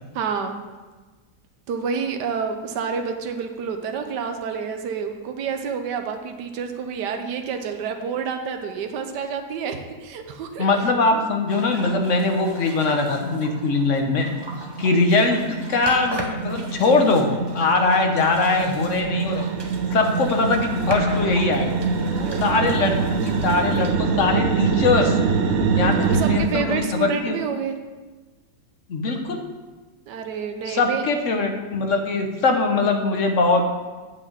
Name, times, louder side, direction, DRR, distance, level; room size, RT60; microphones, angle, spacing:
voice 1, 0.1-0.6 1.7-11.2 22.1-22.7 26.0-27.8 30.1-31.0, right 6 dB, 70° right, 5 dB, 1.4 m, -29 dB
voice 2, 10.6-14.3 14.8-19.5 19.9-21.7 22.4-25.2 25.8-27.4 28.9-29.4 30.6-33.6, left 3 dB, 50° left, 4 dB, 1.1 m, -21 dB
sound 1, 11.5-25.0, right 1 dB, 25° right, 0.5 m, -39 dB
sound 2, 13.1-13.3 13.6-26.4, right 4 dB, 55° right, 0.8 m, -25 dB
8.4 x 5.3 x 7.2 m, 1.3 s
omnidirectional pair, 1.9 m